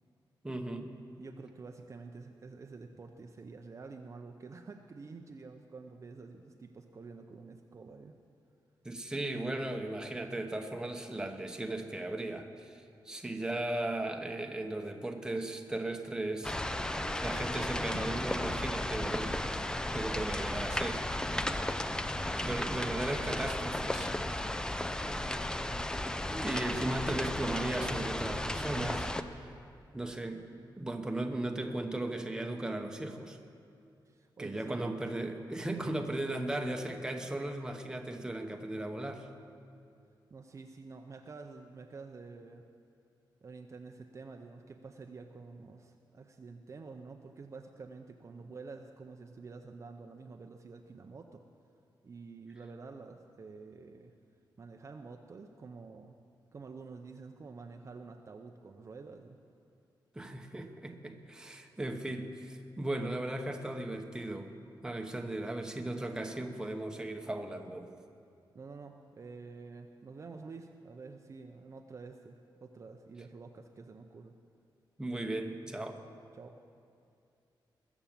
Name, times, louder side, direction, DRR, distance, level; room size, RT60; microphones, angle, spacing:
voice 1, 0.4-0.9 8.8-16.8 17.2-19.5 19.9-21.1 22.4-24.4 26.3-29.5 29.9-30.5 30.8-33.4 34.4-39.3 60.1-64.5 64.8-67.9 75.0-76.0, right 1 dB, 10° right, 4 dB, 0.9 m, -37 dB
voice 2, 1.2-8.2 25.5-25.9 26.2-26.8 34.1-34.9 40.3-42.7 43.4-51.4 52.0-54.1 54.6-56.2 56.5-59.4 68.5-74.3 76.3-76.6, right 4 dB, 35° right, 4 dB, 0.6 m, -49 dB
sound 1, 16.4-29.2, left 1 dB, 10° left, 0.4 m, -34 dB
21.0 x 7.1 x 7.3 m, 2.5 s
wide cardioid pair, 155°, 8 cm